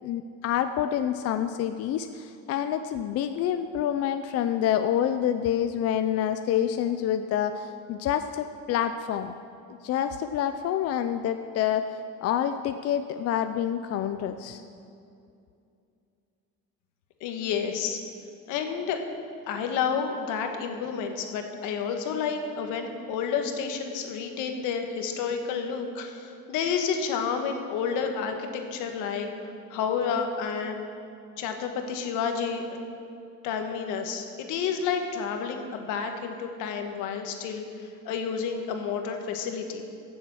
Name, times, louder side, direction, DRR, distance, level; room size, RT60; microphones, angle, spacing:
voice 1, 0.0-9.3 9.7-14.6, left 10 dB, 55° left, 9 dB, 0.5 m, -27 dB
voice 2, 17.2-18.0 18.5-19.0 19.5-29.3 29.7-30.8 31.4-32.8 33.4-39.8, left 6 dB, 90° left, 5 dB, 1.5 m, -30 dB
15.5 x 7.2 x 6.3 m, 2.5 s
cardioid pair, 135°, 30 cm